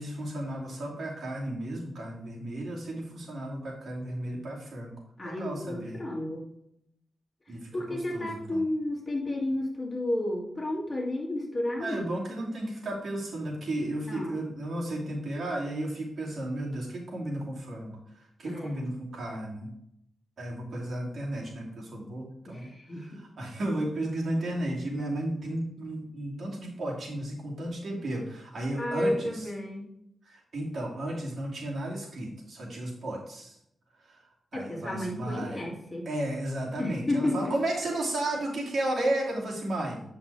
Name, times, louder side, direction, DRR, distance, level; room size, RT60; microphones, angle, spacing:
voice 1, 0.0-4.9 5.2-6.0 7.5-8.6 11.8-19.7 20.4-29.5 30.3-33.6 34.0-34.2 34.5-35.6 36.1-40.0, right 1 dB, 65° right, -3 dB, 2.6 m, -34 dB
voice 2, 5.2-6.4 7.7-12.1 14.1-14.5 18.4-18.8 22.5-23.2 28.8-29.9 34.5-36.1 36.8-37.5, left 1 dB, 30° left, -1 dB, 2.4 m, -32 dB
9.2 x 5.7 x 3.4 m, 0.76 s
cardioid pair, 80°, 0 cm